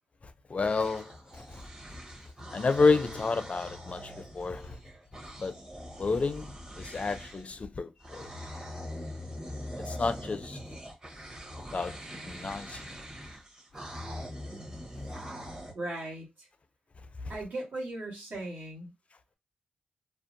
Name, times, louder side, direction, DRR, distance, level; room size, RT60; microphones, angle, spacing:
voice 1, 0.5-1.1 1.5-1.6 2.5-4.8 5.4-5.5 6.0-8.3 9.8-10.6 11.7-12.0 12.3-12.8, left 4 dB, 45° left, 0.4 m, -29 dB
sound 1, 0.6-7.6 8.0-15.7, equal, 25° right, 0.9 m, -43 dB
voice 2, 15.7-16.5 17.3-18.9, right 2 dB, 70° right, 1.3 m, -38 dB
2.5 x 2.2 x 2.6 m
supercardioid pair, 45°, 3 cm